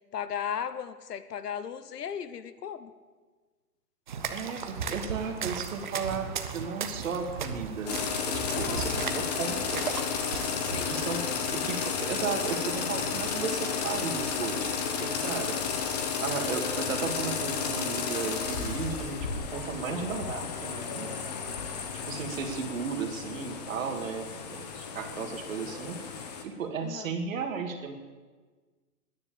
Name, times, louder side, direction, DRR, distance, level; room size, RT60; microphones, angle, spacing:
voice 1, 0.1-2.9 8.4-9.5 10.6-11.0 26.8-27.1, left 8 dB, 75° left, 13 dB, 1.1 m, -37 dB
sound 1, 4.1-11.2, right 6 dB, 30° right, 0.6 m, -36 dB
voice 2, 4.3-9.9 10.8-15.9 16.2-21.2 22.1-26.0 26.4-28.0, right 5 dB, 55° right, 5 dB, 2.0 m, -35 dB
sound 2, 7.9-26.4, left 6 dB, 25° left, 0.9 m, -32 dB
10.0 x 9.5 x 8.7 m, 1.4 s
hypercardioid pair, 170°, 47 cm